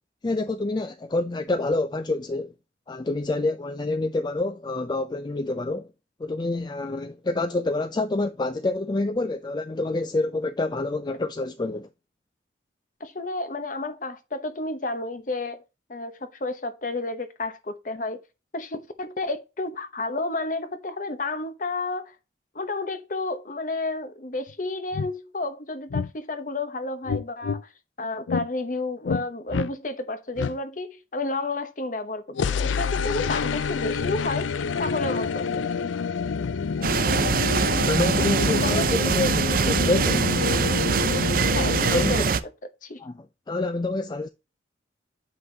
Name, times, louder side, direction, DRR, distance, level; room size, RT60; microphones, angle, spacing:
voice 1, 0.2-2.5 2.9-5.9 6.2-11.9 37.6-40.3 41.9-42.1 43.0-44.3, left 2 dB, 25° left, 0.3 m, -27 dB
voice 2, 13.0-15.6 15.9-18.2 18.5-22.1 22.5-27.7 28.0-35.9 38.5-38.9 41.5-42.3 42.8-43.0, left 2 dB, 45° left, 0.9 m, -31 dB
sound 1, 24.5-24.6 24.9-25.1 25.9-26.1 27.1-27.6 28.3-28.5 29.0-29.3 29.5-29.7 30.4-30.6 32.4-42.2, left 5 dB, 90° left, 0.5 m, -27 dB
sound 2, 36.8-42.4, right 5 dB, 50° right, 0.5 m, -23 dB
7.9 x 5.6 x 2.7 m
head